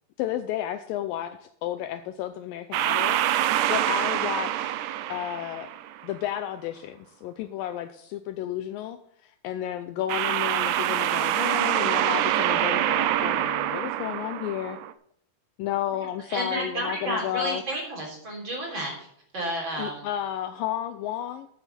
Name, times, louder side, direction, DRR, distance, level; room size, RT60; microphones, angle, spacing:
voice 1, 0.2-4.8 5.1-5.7 6.0-14.8 15.6-17.6 19.7-21.5, left 12 dB, 80° left, 10 dB, 2.1 m, -32 dB
sound 1, 2.7-6.0 10.1-14.9, right 12 dB, 85° right, 1.9 m, -25 dB
voice 2, 16.3-19.1 19.3-20.0, right 1 dB, 30° right, -1 dB, 3.9 m, -31 dB
14.0 x 8.1 x 4.1 m, 0.69 s
omnidirectional pair, 4.4 m